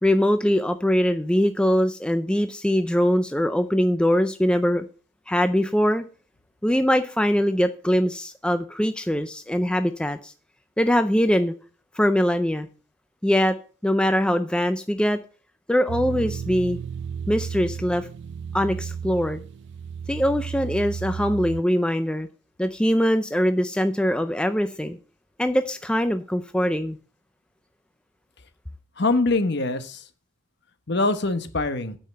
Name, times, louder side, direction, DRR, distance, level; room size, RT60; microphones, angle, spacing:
voice 1, 0.0-4.8 5.3-6.0 6.6-10.3 10.8-11.5 11.9-12.7 13.2-13.6 13.8-15.2 15.7-16.8 17.3-18.1 18.5-19.4 20.1-22.3 22.6-25.0 25.4-27.0, equal, 5° left, 9 dB, 0.4 m, -22 dB
sound 1, 15.9-21.6, right 7 dB, 60° right, 0.4 m, -33 dB
voice 2, 29.0-30.1 30.9-32.0, left 2 dB, 55° left, 10 dB, 1.1 m, -23 dB
8.9 x 5.7 x 7.5 m, 0.39 s
head